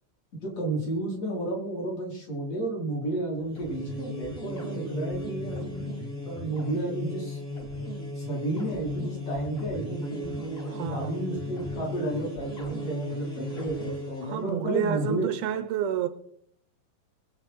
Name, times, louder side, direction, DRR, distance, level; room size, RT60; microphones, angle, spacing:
voice 1, 0.4-5.9 6.3-7.4 8.2-15.3, right 1 dB, 45° left, 5.6 m, -32 dB
sound 1, 3.4-14.4, left 1 dB, 20° left, 2.5 m, -36 dB
voice 2, 10.7-11.2 14.2-16.1, right 9 dB, 75° right, 2.1 m, -29 dB
21.5 x 8.7 x 4.6 m
omnidirectional pair, 4.0 m